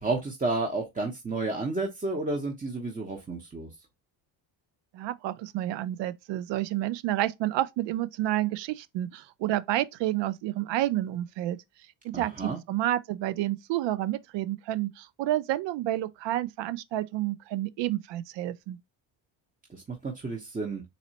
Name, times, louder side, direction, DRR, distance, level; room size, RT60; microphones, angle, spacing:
voice 1, 0.0-3.7 12.1-12.6 19.7-20.8, right 3 dB, 15° right, 0.8 m, -31 dB
voice 2, 4.9-11.6 12.0-18.8, right 14 dB, 65° right, 0.5 m, -30 dB
4.1 x 3.0 x 2.8 m
cardioid pair, 85°, 47 cm